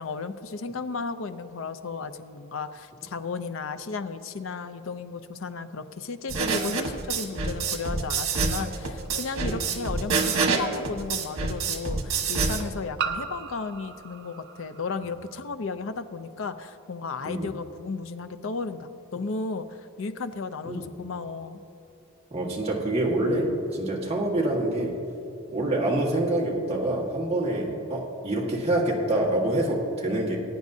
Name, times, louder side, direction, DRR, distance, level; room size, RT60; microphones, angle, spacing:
voice 1, 0.0-21.6, left 4 dB, 70° left, 10 dB, 0.6 m, -34 dB
sound 1, 6.3-12.6, right 4 dB, 85° right, 1.3 m, -27 dB
sound 2, 9.0-9.1 10.8-10.9 13.0-15.5, right 6 dB, 55° right, 0.5 m, -36 dB
voice 2, 22.3-25.0 25.5-30.4, right 1 dB, 30° right, -3 dB, 1.6 m, -26 dB
20.5 x 9.4 x 2.7 m, 3.0 s
head